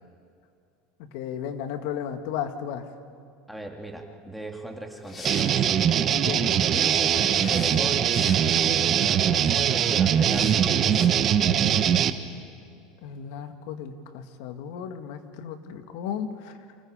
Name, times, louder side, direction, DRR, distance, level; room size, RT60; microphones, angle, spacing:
voice 1, 1.1-2.8 6.2-6.6 13.0-16.3, left 8 dB, 65° left, 7 dB, 2.0 m, -34 dB
voice 2, 3.5-5.5 6.7-8.1 8.7-11.2, right 1 dB, ahead, 1 dB, 2.4 m, -37 dB
sound 1, 4.9-5.6 7.4-8.6 10.2-10.6 10.9-11.1, left 3 dB, 25° left, 3.5 m, -39 dB
sound 2, 5.3-12.1, right 9 dB, 35° right, 1.1 m, -22 dB
29.0 x 25.5 x 5.1 m, 2.4 s
supercardioid pair, 135°, 0 cm